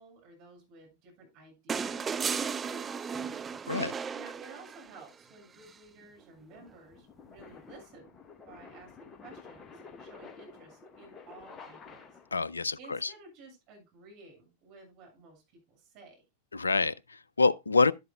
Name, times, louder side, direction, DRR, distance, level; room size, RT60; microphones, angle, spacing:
voice 1, 0.0-2.1 2.4-3.1 4.1-8.2 8.5-12.2 12.8-15.4 15.7-16.2, right 3 dB, 45° right, 7.1 m, -53 dB
sound 1, 1.7-5.0 6.5-6.6, right 6 dB, 20° right, 0.4 m, -34 dB
sound 2, 4.9-12.5, left 4 dB, 20° left, 1.1 m, -51 dB
voice 2, 12.3-13.1 16.5-17.9, left 3 dB, 80° left, 0.4 m, -27 dB
11.5 x 11.0 x 2.3 m
figure-of-eight pair, 95°, 0 cm